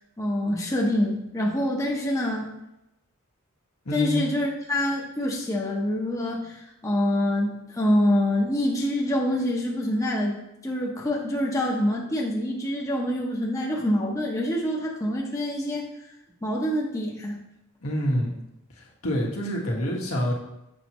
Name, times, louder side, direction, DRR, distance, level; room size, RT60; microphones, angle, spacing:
voice 1, 0.2-2.5 3.9-10.3 10.6-15.9 16.4-17.4, left 1 dB, 15° left, -3 dB, 0.9 m, -26 dB
voice 2, 3.8-4.2 17.8-18.3 19.0-20.3, equal, 80° left, -3 dB, 1.6 m, -26 dB
7.2 x 5.7 x 3.0 m, 0.87 s
head